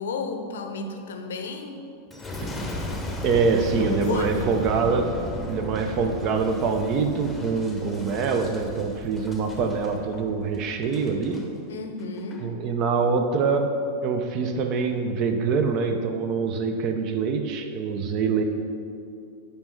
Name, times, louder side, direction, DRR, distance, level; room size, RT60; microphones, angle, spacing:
voice 1, 0.0-1.9 3.6-4.7 11.7-12.5, left 3 dB, 60° left, 5 dB, 0.6 m, -32 dB
Boom, 2.1-11.4 12.0-12.4, left 1 dB, 10° left, 0.9 m, -35 dB
voice 2, 3.2-5.2 5.5-11.5 12.4-13.7 14.0-18.4, right 5 dB, 40° right, 6 dB, 0.6 m, -25 dB
7.5 x 5.2 x 4.4 m, 2.5 s
figure-of-eight pair, 90°, 0 cm